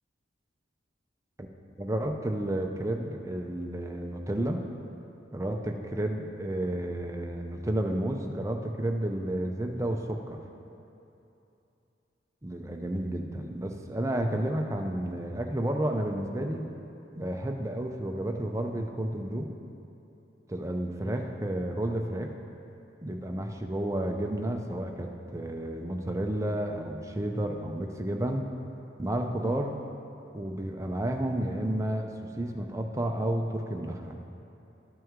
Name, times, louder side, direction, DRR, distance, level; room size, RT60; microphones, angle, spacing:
voice 1, 1.8-4.6 5.3-10.4 12.4-16.7 17.2-19.5 20.5-22.3 23.0-28.5 29.0-29.8 30.3-32.1 32.4-34.2, right 1 dB, 15° right, 3 dB, 0.5 m, -31 dB
12.0 x 6.0 x 3.7 m, 2.8 s
head